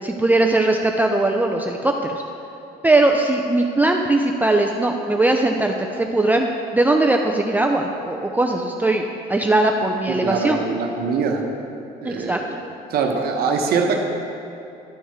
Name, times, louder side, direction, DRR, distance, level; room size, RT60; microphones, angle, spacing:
voice 1, 0.0-2.2 2.8-9.0 9.3-10.6 12.0-12.4, right 2 dB, 10° right, 2 dB, 0.4 m, -19 dB
voice 2, 10.2-11.4 12.0-12.5 12.9-14.0, right 5 dB, 65° right, 2 dB, 0.9 m, -22 dB
12.0 x 4.5 x 4.5 m, 2.7 s
cardioid pair, 110°, 17 cm